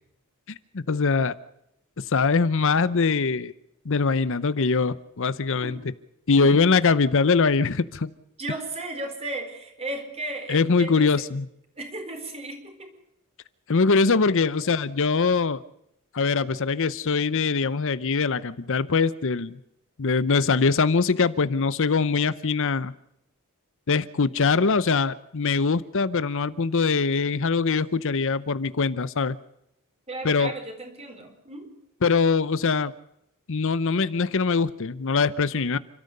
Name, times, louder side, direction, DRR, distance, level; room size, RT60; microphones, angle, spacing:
voice 1, 0.5-1.3 2.0-3.5 3.8-5.8 6.3-8.1 10.5-11.5 13.7-15.6 16.1-19.6 20.0-22.9 23.9-29.4 30.2-30.5 32.0-32.9 33.5-35.8, left 4 dB, 65° left, 16 dB, 0.7 m, -22 dB
voice 2, 8.4-11.2 11.8-12.9 14.6-14.7 30.1-31.7, right 2 dB, 30° right, 5 dB, 4.4 m, -35 dB
30.0 x 13.5 x 6.6 m, 0.81 s
head